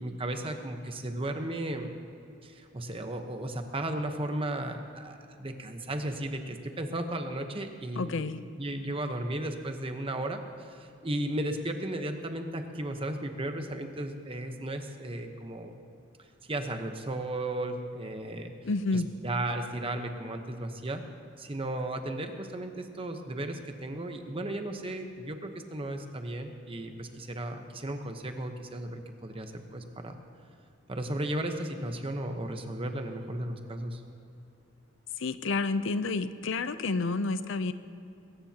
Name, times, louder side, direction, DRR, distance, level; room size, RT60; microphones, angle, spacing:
voice 1, 0.0-2.0 2.4-15.8 16.4-18.5 18.9-21.0 21.4-30.2 30.9-34.0, right 1 dB, 30° right, 5 dB, 1.0 m, -35 dB
voice 2, 8.0-8.4 18.6-19.1 35.2-37.7, left 3 dB, 65° left, 12 dB, 0.6 m, -29 dB
20.5 x 17.5 x 2.9 m, 2.6 s
head